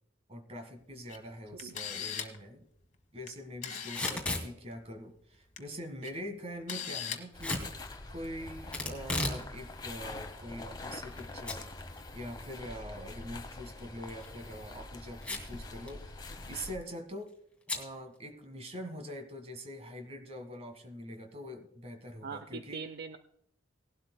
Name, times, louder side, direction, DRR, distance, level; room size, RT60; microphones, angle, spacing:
voice 1, 0.3-2.7 3.1-11.9 12.1-17.4 17.7-22.8, equal, 35° right, 6 dB, 1.7 m, -44 dB
Camera, 1.1-1.2 1.6-2.4 3.3-3.4 3.6-4.2 5.3-5.6 6.0-6.1 6.7-7.2 7.5-7.6, left 8 dB, 40° left, 1.5 m, -38 dB
Packing tape duct tape / Tearing, 3.8-4.5 7.4-7.7 8.7-9.4 9.8-9.9 10.6-11.2 11.5-11.6 12.0-12.1 14.0-14.3 15.2-15.6 15.9-16.0 16.2-16.6 17.7-17.9, left 2 dB, 5° left, 2.5 m, -34 dB
sound 1, 7.3-16.8, left 2 dB, 20° left, 1.0 m, -45 dB
voice 2, 22.2-23.2, right 5 dB, 55° right, 9 dB, 0.6 m, -41 dB
19.5 x 12.0 x 2.2 m, 0.72 s
head